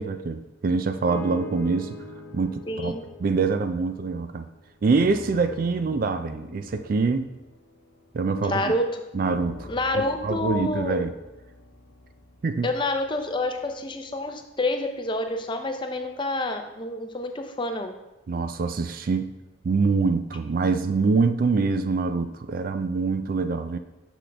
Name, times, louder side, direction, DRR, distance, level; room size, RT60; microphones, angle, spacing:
voice 1, 0.0-1.9 2.3-2.9 3.2-4.5 4.8-7.3 8.1-8.7 9.1-9.7 10.2-11.1 12.4-12.7 18.3-19.3 19.6-23.8, right 4 dB, 45° right, 9 dB, 0.3 m, -25 dB
sound 1, 1.1-4.4 4.8-8.6 9.2-13.4 14.1-14.2, left 1 dB, 60° left, 0.8 m, -43 dB
voice 2, 2.7-3.0 8.4-9.0 9.7-11.0 12.6-17.9, left 2 dB, 25° left, 6 dB, 0.5 m, -28 dB
6.2 x 6.2 x 3.4 m, 1.0 s
head